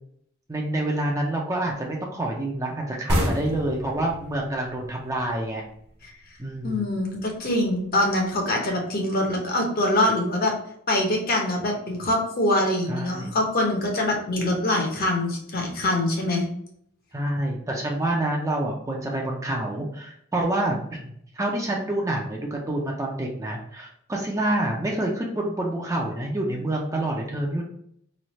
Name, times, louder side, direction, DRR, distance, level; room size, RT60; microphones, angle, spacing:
voice 1, 0.5-5.6 6.4-6.9 12.9-13.3 17.1-27.6, right 1 dB, 15° right, -1 dB, 0.4 m, -27 dB
sound 1, 3.1-6.5, equal, 50° right, 0.8 m, -29 dB
voice 2, 6.6-10.5 10.9-16.5, left 1 dB, 45° left, 0 dB, 0.8 m, -24 dB
3.1 x 2.3 x 4.0 m, 0.69 s
head